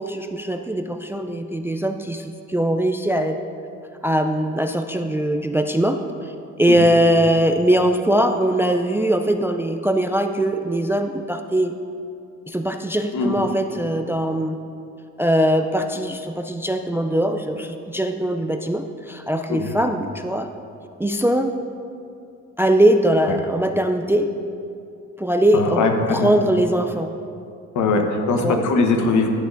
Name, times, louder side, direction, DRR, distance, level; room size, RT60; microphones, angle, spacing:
voice 1, 0.0-3.4 4.0-6.0 6.2-6.3 6.6-11.7 12.5-14.6 15.2-20.5 21.0-21.5 22.6-24.3 25.2-27.1 28.4-28.6, right 1 dB, 10° right, 6 dB, 0.3 m, -21 dB
voice 2, 25.5-26.3 27.7-29.3, left 3 dB, 75° left, 3 dB, 1.0 m, -20 dB
12.5 x 7.3 x 2.5 m, 2.5 s
cardioid pair, 90°, 30 cm